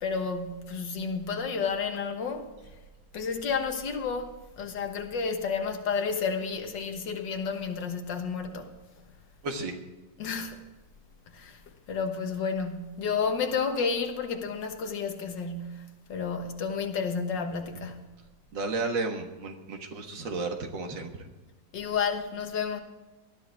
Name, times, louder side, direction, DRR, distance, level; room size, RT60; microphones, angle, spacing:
voice 1, 0.0-2.5 3.1-8.7 10.2-10.6 11.3-11.6 11.9-18.1 21.7-22.8, left 5 dB, 75° left, 1.9 m, -31 dB
voice 2, 9.4-9.8 18.5-21.3, right 3 dB, 85° right, 2.2 m, -33 dB
19.0 x 12.5 x 3.5 m
omnidirectional pair, 2.0 m